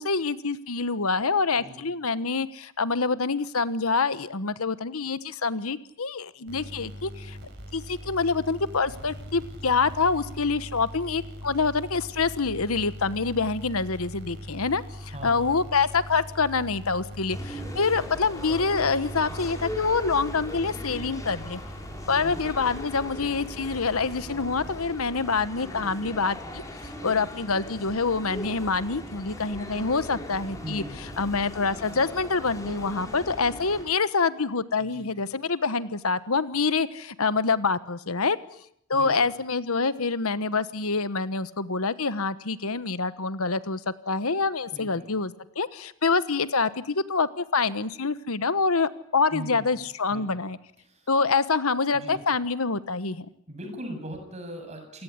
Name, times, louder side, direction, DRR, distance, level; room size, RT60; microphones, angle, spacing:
voice 1, 0.0-7.4 7.7-21.6 22.1-26.6 27.0-38.4 38.9-43.8 44.1-50.6 51.1-53.3, left 4 dB, 80° left, 14 dB, 1.2 m, -26 dB
sound 1, 6.5-25.2, equal, 50° right, 6.8 m, -41 dB
voice 2, 15.1-15.7 22.2-22.6 30.6-31.3 34.8-35.1 38.9-39.3 44.7-45.1 49.3-49.8 50.1-50.4 50.8-51.1 51.9-52.2 53.5-55.0, equal, 30° right, 5 dB, 7.5 m, -40 dB
sound 2, 17.3-33.8, equal, 15° left, 5.1 m, -39 dB
28.5 x 17.0 x 9.6 m, 0.71 s
head